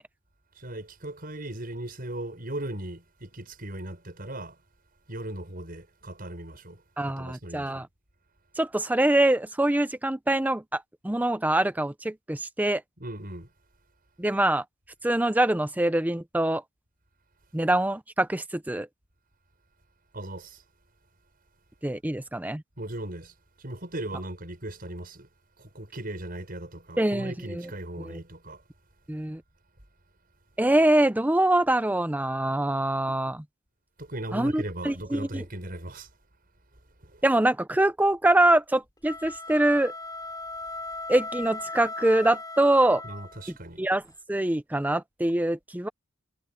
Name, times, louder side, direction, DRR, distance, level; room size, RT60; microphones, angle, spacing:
voice 1, 0.5-4.6 5.1-7.9 13.0-13.5 20.1-20.6 22.8-25.3 25.6-28.6 34.0-36.1 37.0-37.2 43.0-43.8, right 1 dB, 45° right, 6.1 m, -38 dB
voice 2, 7.0-7.9 8.6-12.8 14.2-14.6 15.0-16.6 17.5-18.9 21.8-22.6 27.0-27.6 28.0-28.2 29.1-29.4 30.6-33.4 34.3-35.4 37.2-39.9 41.1-43.0 43.8-44.0 44.3-45.9, right 1 dB, 10° right, 0.5 m, -24 dB
sound 1, 39.0-43.5, left 2 dB, 20° left, 4.6 m, -38 dB
head